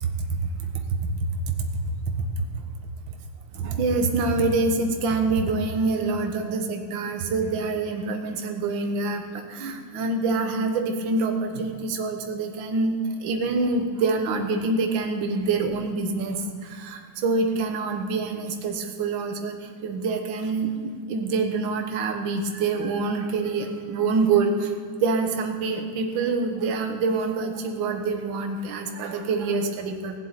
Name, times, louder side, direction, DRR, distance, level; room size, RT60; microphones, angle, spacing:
voice 1, 3.5-16.4 16.6-19.5 19.8-24.7 25.0-30.2, right 3 dB, 50° right, 4 dB, 1.6 m, -26 dB
16.5 x 7.7 x 8.9 m, 2.2 s
omnidirectional pair, 3.5 m